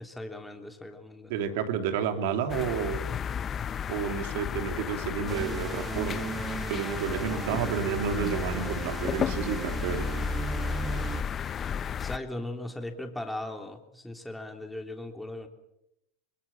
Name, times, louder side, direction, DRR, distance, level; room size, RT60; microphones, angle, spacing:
voice 1, 0.0-1.5 11.6-15.5, left 1 dB, 5° left, 4 dB, 3.3 m, -39 dB
voice 2, 1.3-3.0 3.9-6.2 6.7-10.1, right 7 dB, 70° right, 7 dB, 3.1 m, -30 dB
sound 1, 2.5-12.2, left 7 dB, 30° left, 0.8 m, -33 dB
sound 2, 5.3-11.2, right 5 dB, 25° right, 1.6 m, -36 dB
24.5 x 21.0 x 7.3 m, 0.84 s
supercardioid pair, 110°, 0 cm